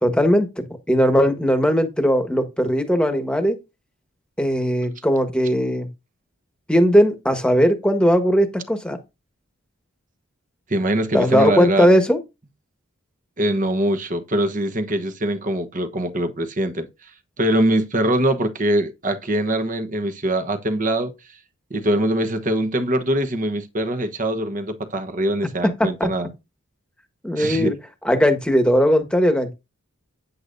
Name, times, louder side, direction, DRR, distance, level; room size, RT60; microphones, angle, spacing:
voice 1, 0.0-3.6 4.4-5.9 6.7-9.0 11.1-12.2 25.8-26.1 27.2-27.7 28.0-29.5, equal, 5° left, 1.3 m, -18 dB
voice 2, 10.7-11.9 13.4-16.9 17.4-21.1 21.7-26.3 27.4-27.7, right 1 dB, 35° right, 1.1 m, -22 dB
9.5 x 8.3 x 2.6 m
head